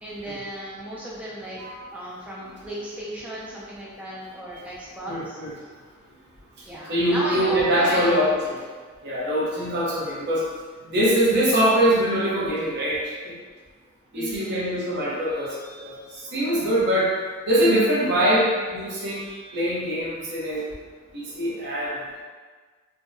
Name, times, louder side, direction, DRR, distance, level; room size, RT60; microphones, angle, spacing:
voice 1, 0.0-1.6 1.9-5.4 6.7-8.3 14.1-14.8, equal, 5° right, -7 dB, 0.4 m, -34 dB
voice 2, 5.0-5.5 6.9-8.6 9.0-10.5 10.8-13.3 14.1-17.1 17.5-19.2 19.5-20.7 21.1-22.0, equal, 55° right, -6 dB, 0.9 m, -23 dB
3.4 x 2.1 x 2.7 m, 1.5 s
head